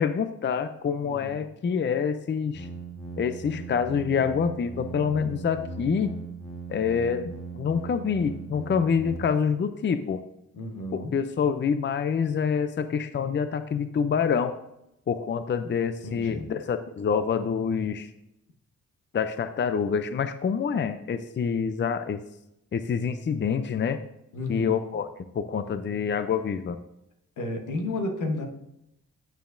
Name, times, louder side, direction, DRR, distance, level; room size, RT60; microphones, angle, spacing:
voice 1, 0.0-2.7 3.2-6.1 6.7-10.2 10.9-14.5 15.1-18.1 19.1-22.2 22.7-24.0 24.5-25.1 25.3-26.8, left 6 dB, 40° left, 10 dB, 0.5 m, -26 dB
voice 2, 1.0-1.4 10.5-11.1 16.0-16.5 24.3-24.7 27.4-28.5, left 2 dB, 85° left, 5 dB, 1.2 m, -32 dB
sound 1, 2.5-9.2, right 4 dB, 10° left, 1.5 m, -39 dB
8.9 x 7.1 x 2.6 m, 0.83 s
cardioid pair, 80°, 30 cm